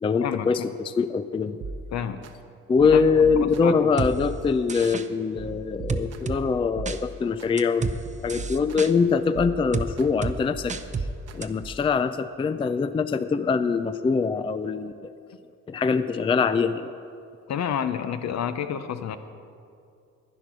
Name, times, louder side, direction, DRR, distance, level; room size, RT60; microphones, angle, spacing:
voice 1, 0.0-1.6 2.7-7.9 8.2-11.1 11.3-15.1 15.7-16.9, left 5 dB, 20° left, 12 dB, 0.3 m, -23 dB
sound 1, 1.6-2.3 2.8-3.8 4.2-4.9 5.4-7.5 7.9-9.0 9.3-10.1 10.5-11.9, right 2 dB, 55° right, 0.9 m, -39 dB
voice 2, 1.9-2.2 2.9-3.0 3.4-3.9 17.5-19.2, left 8 dB, 60° left, 11 dB, 0.8 m, -29 dB
sound 2, 4.0-4.1 4.7-5.1 5.9-6.4 6.9-7.0 7.6-8.0 8.3-8.9 9.7-9.9 10.2-10.4 10.7-11.1 11.4-11.5, right 4 dB, 25° right, 0.6 m, -29 dB
11.0 x 10.0 x 6.2 m, 2.5 s
cardioid pair, 90°, 30 cm